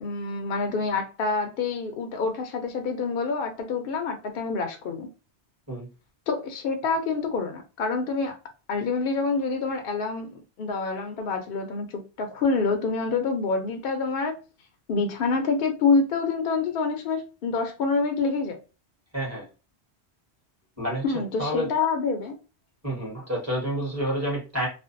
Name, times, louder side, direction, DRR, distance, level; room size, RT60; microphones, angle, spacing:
voice 1, 0.0-5.1 6.3-8.3 8.7-14.3 14.9-18.6 21.0-22.4, left 4 dB, 65° left, 0.7 m, -27 dB
voice 2, 19.1-19.4 20.8-21.0 21.4-21.7 22.8-24.7, right 1 dB, 15° right, 1.0 m, -28 dB
2.5 x 2.1 x 2.5 m
omnidirectional pair, 1.1 m